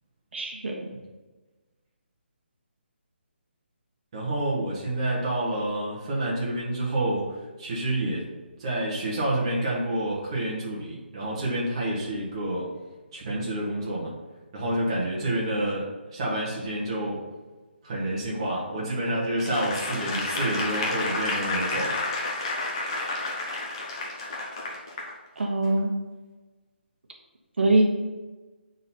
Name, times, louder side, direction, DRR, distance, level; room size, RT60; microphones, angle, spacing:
voice 1, 0.3-0.9 25.4-25.9 27.6-27.8, right 2 dB, 70° right, 0 dB, 1.3 m, -23 dB
voice 2, 4.1-7.2 7.6-8.3 8.6-12.7 13.1-14.1 14.5-17.2 17.8-22.2, right 1 dB, 30° right, -5 dB, 1.4 m, -28 dB
Applause / Crowd, 19.4-25.1 25.6-25.8, left 2 dB, 30° left, 0.8 m, -30 dB
6.3 x 4.0 x 4.3 m, 1.2 s
hypercardioid pair, 175°, 6 cm